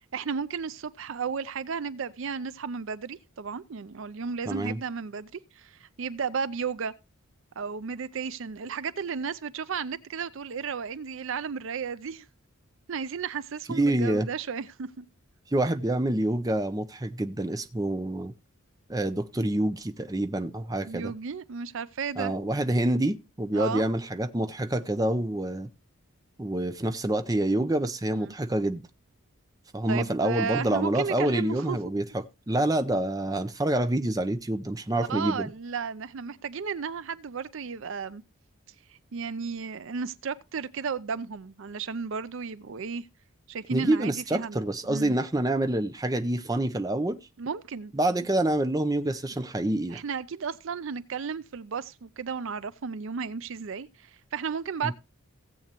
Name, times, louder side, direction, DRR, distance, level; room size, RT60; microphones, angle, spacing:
voice 1, 0.1-6.9 7.6-12.3 12.9-15.1 20.8-22.3 23.5-23.9 28.1-28.3 29.9-31.8 35.0-38.2 39.1-43.1 43.5-45.2 47.4-47.9 49.9-54.9, right 6 dB, 60° right, 0.5 m, -34 dB
voice 2, 4.5-4.8 13.7-14.3 15.5-18.3 18.9-21.1 22.2-25.7 26.4-28.8 29.7-35.5 43.7-47.2 47.9-50.0 54.8-54.9, right 1 dB, 15° right, 0.6 m, -27 dB
17.0 x 7.9 x 2.9 m
head